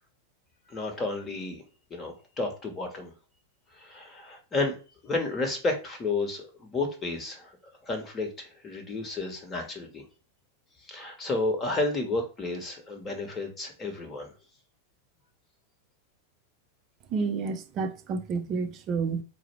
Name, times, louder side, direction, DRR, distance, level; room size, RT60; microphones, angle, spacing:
voice 1, 0.7-1.6 1.9-3.1 3.7-4.7 5.0-7.5 7.8-10.1 10.8-14.3, left 2 dB, 20° left, 1.2 m, -31 dB
voice 2, 17.1-19.2, right 5 dB, 35° right, 0.5 m, -30 dB
4.7 x 2.1 x 4.4 m
figure-of-eight pair, 90°, 0 cm